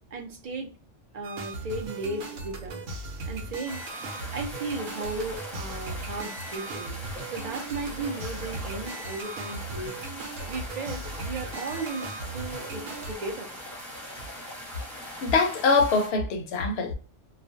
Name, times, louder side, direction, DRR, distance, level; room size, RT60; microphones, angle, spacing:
voice 1, 0.1-0.7 1.1-2.8 3.3-3.8 4.3-7.0 7.3-10.0 10.5-13.5, right 3 dB, 60° right, 0.4 m, -35 dB
sound 1, 1.2-13.2, right 2 dB, 90° right, 1.0 m, -38 dB
sound 2, 3.6-16.1, left 1 dB, ahead, 0.9 m, -41 dB
voice 2, 15.2-16.9, left 4 dB, 65° left, 0.8 m, -23 dB
2.4 x 2.1 x 2.5 m
omnidirectional pair, 1.3 m